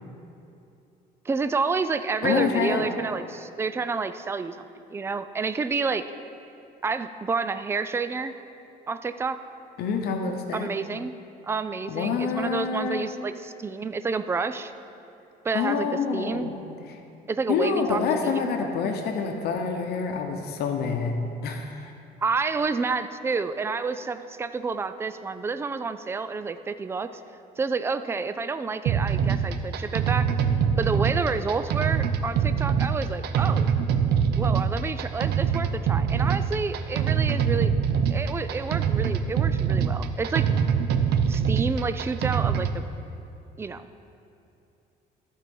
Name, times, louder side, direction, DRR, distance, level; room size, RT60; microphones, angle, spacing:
voice 1, 1.3-4.6 4.9-6.0 6.8-8.3 8.9-9.4 10.5-11.2 11.4-14.7 15.4-16.5 17.3-18.5 22.2-27.1 27.6-30.3 30.8-33.7 34.4-37.8 38.1-40.5 41.3-42.8 43.6-43.9, right 4 dB, 15° right, 11 dB, 0.3 m, -29 dB
voice 2, 2.2-2.9 9.8-10.7 11.9-13.1 15.5-17.0 17.5-21.1 21.4-21.9, left 5 dB, 70° left, 4 dB, 0.9 m, -27 dB
sound 1, 28.9-42.8, right 7 dB, 75° right, 0.6 m, -24 dB
13.5 x 4.6 x 5.4 m, 2.7 s
cardioid pair, 110°, 17 cm